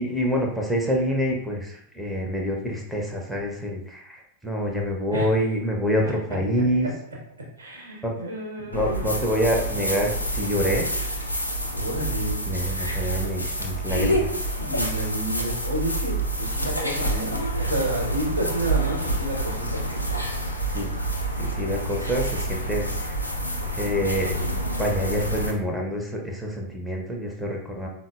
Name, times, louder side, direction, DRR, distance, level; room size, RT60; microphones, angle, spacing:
voice 1, 0.0-6.9 8.0-8.1 8.7-10.9 12.5-14.4 20.7-20.9 21.3-23.2 23.7-27.9, equal, ahead, -1 dB, 0.5 m, -27 dB
voice 2, 6.5-6.9 7.6-9.0 11.7-12.4 14.6-19.8, right 1 dB, 75° right, -2 dB, 0.8 m, -30 dB
sound 1, 8.7-25.5, right 1 dB, 90° left, 0.4 m, -28 dB
3.7 x 2.0 x 2.2 m, 0.74 s
figure-of-eight pair, 90°, 0 cm